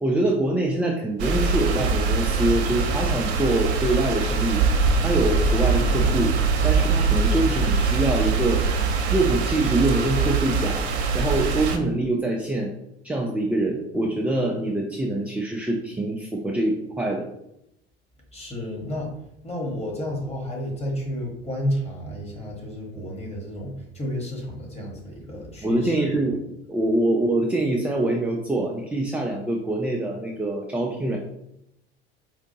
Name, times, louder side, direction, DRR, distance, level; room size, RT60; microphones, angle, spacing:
voice 1, 0.0-4.6 5.0-6.3 6.6-8.8 9.1-10.9 11.1-12.7 13.0-17.3 25.6-26.4 26.7-31.2, right 2 dB, 5° right, 0 dB, 0.4 m, -24 dB
sound 1, 1.2-11.8, right 4 dB, 75° right, 0.7 m, -23 dB
voice 2, 18.3-19.1 19.4-26.1, equal, 20° left, -1 dB, 1.5 m, -31 dB
4.6 x 2.5 x 2.8 m, 0.80 s
hypercardioid pair, 75°, 33 cm